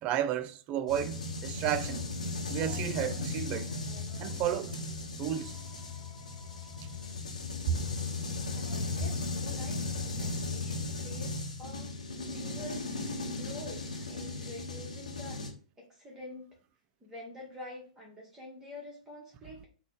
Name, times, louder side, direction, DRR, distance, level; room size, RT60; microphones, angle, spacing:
voice 1, 0.0-2.1 2.5-3.7 4.2-4.8 5.2-5.5 7.7-7.8, right 10 dB, 35° right, 0.3 m, -32 dB
sound 1, 0.9-15.5, left 3 dB, 80° left, 0.9 m, -36 dB
Telephone, 2.5-4.4 5.2-7.1 8.5-8.6 10.2-10.4, left 3 dB, 45° left, 1.0 m, -56 dB
voice 2, 8.5-9.8 10.2-11.9 12.2-15.4 15.8-16.5 17.0-19.7, left 1 dB, 15° right, 0.9 m, -47 dB
4.0 x 2.1 x 3.6 m
figure-of-eight pair, 110°, 4 cm